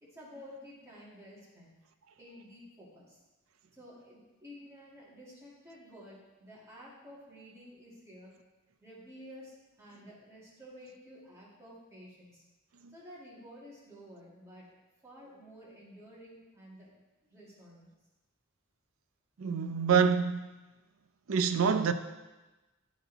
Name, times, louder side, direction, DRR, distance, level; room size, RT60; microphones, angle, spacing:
voice 1, 0.0-1.7 2.2-3.2 3.7-8.3 8.8-12.4 12.9-14.7 15.0-17.0 17.3-17.9, equal, 15° right, 2.2 m, -52 dB
voice 2, 19.4-20.5 21.3-21.9, right 6 dB, 70° right, 0.5 m, -26 dB
12.0 x 4.2 x 4.0 m
head